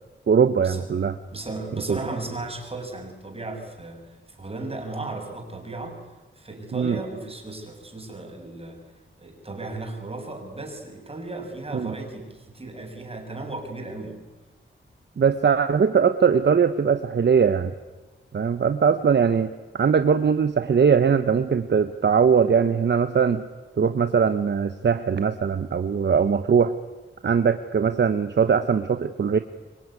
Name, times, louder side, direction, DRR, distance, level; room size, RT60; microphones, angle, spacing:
voice 1, 0.3-1.2 1.9-2.0 6.7-7.0 11.7-11.9 15.2-17.7 18.3-23.4 23.8-26.7 27.2-29.4, right 6 dB, 55° right, 10 dB, 1.0 m, -21 dB
voice 2, 1.3-6.0 6.4-8.8 9.2-14.2, right 2 dB, 30° right, 3 dB, 6.1 m, -35 dB
24.5 x 24.0 x 9.7 m, 1.2 s
wide cardioid pair, 125°, 21 cm